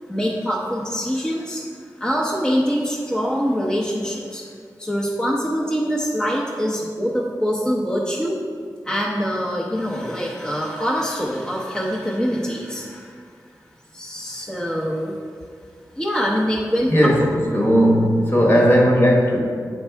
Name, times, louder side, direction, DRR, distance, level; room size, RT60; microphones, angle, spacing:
voice 1, 0.1-4.4 4.8-8.4 8.8-13.1 13.9-15.2 16.0-16.9, equal, 10° left, -5 dB, 0.8 m, -24 dB
voice 2, 16.9-19.4, equal, 30° left, -2 dB, 1.3 m, -16 dB
7.9 x 4.4 x 3.4 m, 2.1 s
wide cardioid pair, 65°, 7 cm